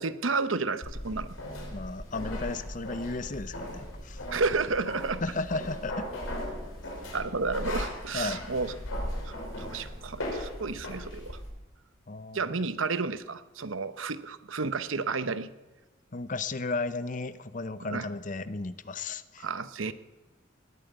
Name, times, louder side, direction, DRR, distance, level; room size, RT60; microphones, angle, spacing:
voice 1, 0.0-1.4 4.3-5.2 7.1-8.8 9.2-11.4 12.3-15.5 17.9-18.1 19.4-19.9, right 4 dB, 80° right, 12 dB, 0.9 m, -31 dB
sound 1, 0.8-11.5, left 1 dB, 90° left, 5.3 m, -37 dB
voice 2, 1.7-4.2 5.2-6.1 8.1-8.4 12.1-12.5 16.1-19.5, left 3 dB, 40° left, 14 dB, 0.7 m, -34 dB
19.5 x 9.1 x 8.0 m, 1.1 s
head